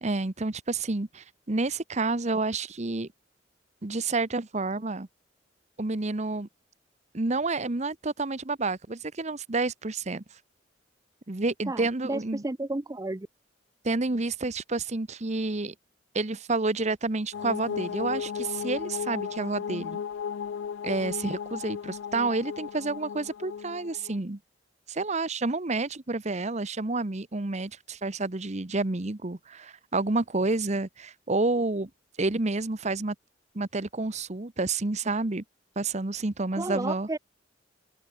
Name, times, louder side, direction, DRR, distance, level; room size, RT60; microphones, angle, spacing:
voice 1, 0.0-3.1 3.8-5.1 5.8-6.5 7.1-10.2 11.3-12.4 13.8-15.7 16.1-20.0 20.8-24.4 24.9-31.9 32.2-33.1 33.5-35.4 35.8-37.1, right 3 dB, 40° right, 1.0 m, -29 dB
voice 2, 11.7-13.3 36.5-37.2, right 2 dB, 20° right, 0.6 m, -32 dB
sound 1, 17.3-24.2, left 7 dB, 80° left, 0.3 m, -35 dB
head